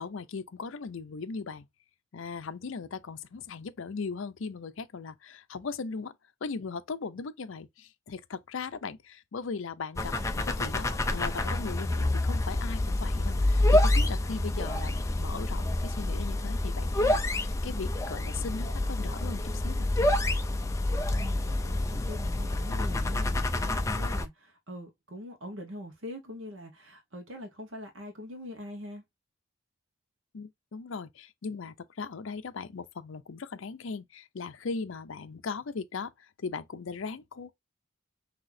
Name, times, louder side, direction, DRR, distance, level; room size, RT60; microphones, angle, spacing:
voice 1, 0.0-1.7 2.1-6.2 6.4-20.2 30.3-37.5, left 4 dB, 70° left, 0.5 m, -38 dB
sound 1, 10.0-24.3, left 1 dB, 15° left, 0.4 m, -28 dB
voice 2, 21.0-29.0, equal, 65° right, 1.1 m, -43 dB
5.9 x 2.8 x 2.6 m
head